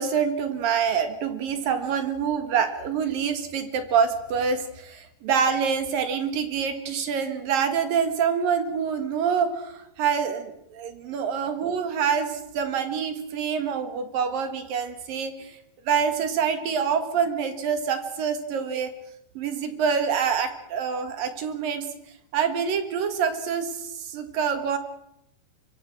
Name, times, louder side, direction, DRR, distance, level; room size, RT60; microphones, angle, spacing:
voice 1, 0.0-15.6 15.9-18.9 19.3-21.9 22.3-24.8, right 7 dB, 60° right, 9 dB, 3.2 m, -26 dB
24.5 x 23.0 x 6.1 m, 0.79 s
omnidirectional pair, 4.8 m